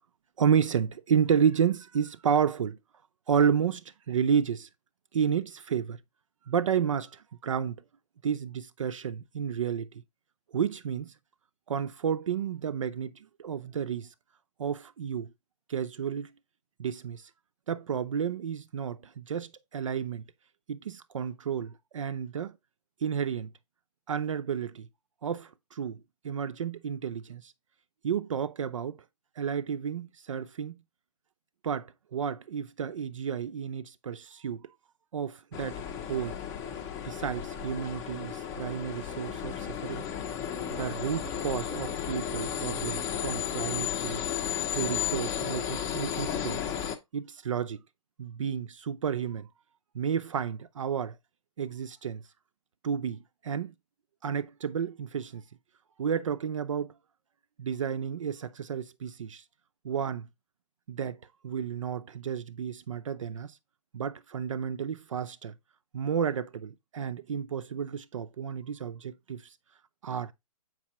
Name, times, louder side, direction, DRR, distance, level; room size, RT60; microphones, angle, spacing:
voice 1, 0.4-2.8 3.3-4.7 5.1-6.0 6.5-7.8 8.2-9.9 10.5-11.1 11.7-13.1 13.4-14.1 14.6-15.3 15.7-16.3 16.8-17.2 17.7-20.2 20.7-22.6 23.0-23.5 24.1-24.9 25.2-27.5 28.0-29.0 29.4-30.7 31.6-34.7 35.1-35.8 36.1-36.4 37.0-40.0 40.7-44.2 44.7-46.6 47.1-47.8 48.2-49.5 49.9-51.2 51.6-52.2 52.8-53.7 54.2-55.4 56.0-56.9 57.6-59.4 59.8-60.3 60.9-61.2 61.4-63.6 63.9-65.5 65.9-69.4 70.0-70.3, right 7 dB, 55° right, 0.6 m, -31 dB
sound 1, 35.5-47.0, left 9 dB, 15° left, 0.7 m, -34 dB
7.4 x 5.5 x 2.9 m
hypercardioid pair, 145°, 20 cm